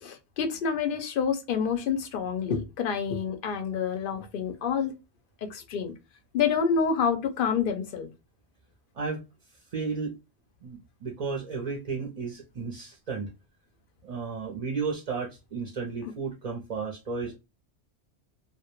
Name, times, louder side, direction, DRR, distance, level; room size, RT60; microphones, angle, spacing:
voice 1, 0.0-4.9 5.4-5.9 6.3-8.1 16.0-16.1, left 6 dB, 60° left, 0.7 m, -28 dB
voice 2, 9.7-10.1 10.6-13.3 14.0-17.4, right 5 dB, 45° right, 0.5 m, -33 dB
2.2 x 2.1 x 2.9 m
omnidirectional pair, 1.1 m